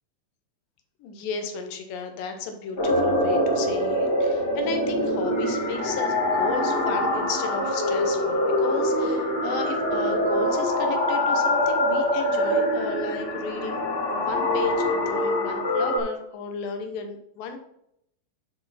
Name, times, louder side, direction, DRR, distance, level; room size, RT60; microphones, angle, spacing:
voice 1, 1.0-13.8 14.1-17.6, left 5 dB, 75° left, 5 dB, 2.6 m, -34 dB
sound 1, 2.8-16.0, left 1 dB, 30° left, 2.8 m, -24 dB
10.0 x 6.3 x 4.1 m, 0.77 s
omnidirectional pair, 4.3 m